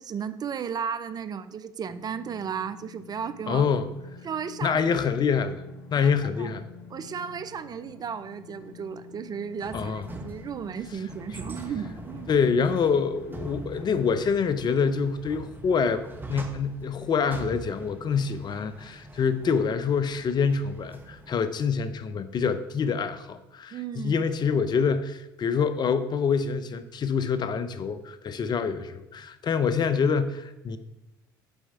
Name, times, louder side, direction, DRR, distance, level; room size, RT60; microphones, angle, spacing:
voice 1, 0.0-3.6 4.2-4.8 6.0-6.6 6.9-12.3 23.7-24.2, right 7 dB, 35° right, 0.5 m, -34 dB
sound 1, 1.8-14.3, left 8 dB, 80° left, 0.8 m, -48 dB
voice 2, 3.5-3.9 4.6-5.6 5.9-6.6 9.7-10.0 12.3-16.0 16.3-30.8, left 6 dB, 40° left, 0.6 m, -26 dB
sound 2, 9.6-21.3, right 2 dB, 20° right, 1.1 m, -43 dB
7.0 x 4.6 x 5.5 m
hypercardioid pair, 65°, 11 cm